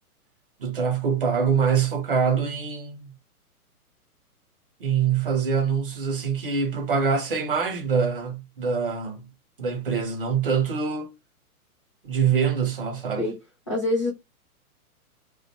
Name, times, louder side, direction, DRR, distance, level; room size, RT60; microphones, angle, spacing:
voice 1, 0.6-3.1 4.8-9.3 9.6-11.1 12.0-13.3, right 6 dB, 40° right, 0.5 m, -24 dB
voice 2, 13.7-14.1, left 2 dB, 20° left, 0.4 m, -24 dB
2.4 x 2.1 x 2.7 m
figure-of-eight pair, 120°, 45 cm